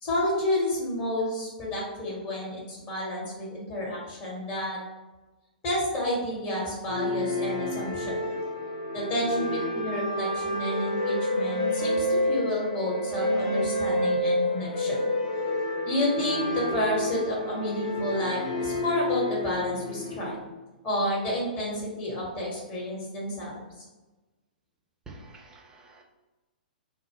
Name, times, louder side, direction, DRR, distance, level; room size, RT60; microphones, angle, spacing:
voice 1, 0.0-4.8 5.6-8.2 8.9-15.0 15.9-20.3 20.8-23.8, left 1 dB, 30° left, -5 dB, 1.0 m, -30 dB
sound 1, 6.9-20.3, left 1 dB, 50° left, 0.5 m, -29 dB
voice 2, 25.1-26.0, right 2 dB, 15° right, 0 dB, 0.4 m, -48 dB
2.1 x 2.0 x 3.3 m, 1.1 s
figure-of-eight pair, 110°, 5 cm